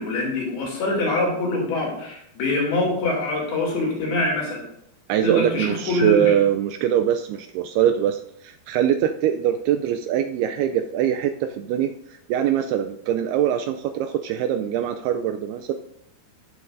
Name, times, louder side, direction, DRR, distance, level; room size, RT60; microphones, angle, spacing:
voice 1, 0.0-4.6 5.2-6.3, left 2 dB, 65° left, -2 dB, 4.5 m, -24 dB
voice 2, 5.1-11.9 12.3-15.7, right 10 dB, 85° right, 7 dB, 2.4 m, -22 dB
15.5 x 7.2 x 2.6 m, 0.74 s
omnidirectional pair, 4.9 m